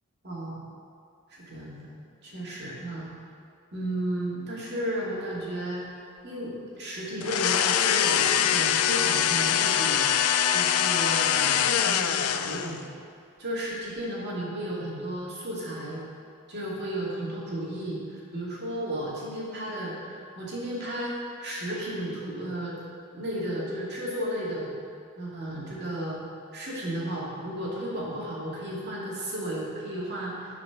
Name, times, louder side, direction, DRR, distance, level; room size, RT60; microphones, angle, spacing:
voice 1, 0.2-0.6 1.3-2.0 2.2-3.1 3.7-5.8 6.2-10.1 10.5-12.8 13.4-16.0 16.5-22.8 23.1-24.7 25.2-26.2 26.5-30.6, right 1 dB, 50° right, -5 dB, 2.5 m, -33 dB
sound 1, 7.2-12.8, left 9 dB, 80° left, 0.4 m, -24 dB
12.0 x 5.0 x 5.9 m, 2.4 s
head